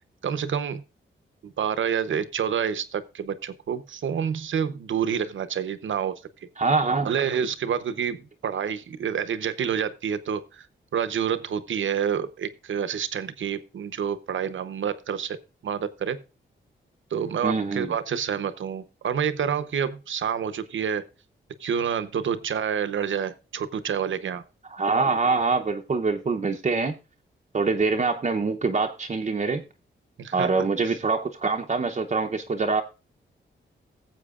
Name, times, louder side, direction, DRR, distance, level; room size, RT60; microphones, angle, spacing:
voice 1, 0.2-0.8 1.4-6.2 7.0-10.7 10.9-15.4 15.6-16.2 17.1-21.0 21.6-24.4 30.2-31.0, right 8 dB, 75° right, 13 dB, 0.8 m, -28 dB
voice 2, 6.6-7.1 17.4-17.9 24.7-26.9 27.5-29.6 30.3-32.8, right 4 dB, 35° right, 3 dB, 0.7 m, -24 dB
18.5 x 7.7 x 2.4 m, 0.31 s
wide cardioid pair, 95°, 20 cm